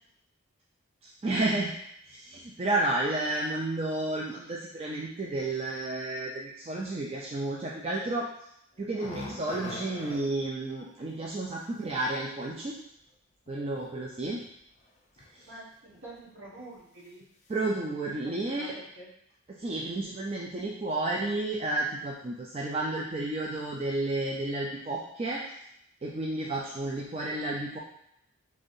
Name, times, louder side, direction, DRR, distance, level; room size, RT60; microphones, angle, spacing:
voice 1, 1.0-1.7 2.1-8.3 8.8-12.7 13.5-14.4 15.3-15.5 17.5-18.7 19.6-25.4 26.0-27.8, right 2 dB, 30° right, -3 dB, 0.4 m, -31 dB
sound 1, 8.8-10.2 12.4-12.5 13.5-13.9 14.2-14.4 15.2-15.5 15.9-16.0 16.4-16.5, left 2 dB, 30° left, 0.5 m, -41 dB
voice 2, 15.5-17.2 18.5-19.1 20.4-20.5, right 2 dB, 60° right, -6 dB, 1.4 m, -47 dB
5.2 x 3.3 x 2.6 m, 0.76 s
head